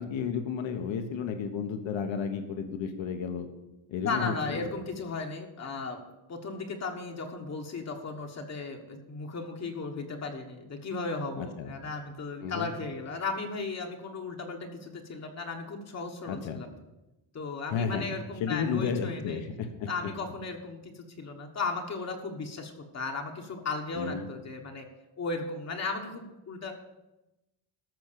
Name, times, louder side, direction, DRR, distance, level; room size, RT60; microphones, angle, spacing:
voice 1, 0.0-3.5 3.9-4.7 11.4-11.7 12.4-12.7 16.3-16.6 17.7-18.1 18.4-20.1 24.0-24.3, left 6 dB, 70° left, 6 dB, 1.4 m, -32 dB
voice 2, 4.0-6.0 6.3-16.7 17.3-19.4 19.9-24.9 25.2-26.7, left 3 dB, 35° left, 2 dB, 1.3 m, -36 dB
14.5 x 6.2 x 6.9 m, 0.99 s
cardioid pair, 155°, 47 cm